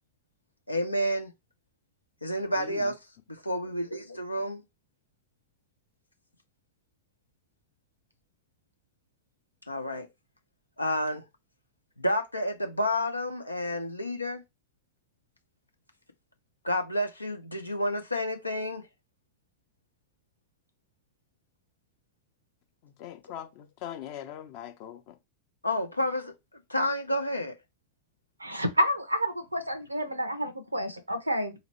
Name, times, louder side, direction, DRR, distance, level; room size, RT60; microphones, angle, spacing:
voice 1, 0.7-1.3 2.2-3.0 3.3-4.6 9.7-10.1 10.8-11.2 12.0-14.4 16.6-18.8 25.6-26.3 26.7-27.5, left 1 dB, 85° left, 0.7 m, -30 dB
voice 2, 23.0-25.1, left 10 dB, 45° left, 0.7 m, -41 dB
voice 3, 28.4-31.5, equal, 85° right, 0.8 m, -29 dB
4.2 x 2.9 x 3.0 m
figure-of-eight pair, 90°, 0 cm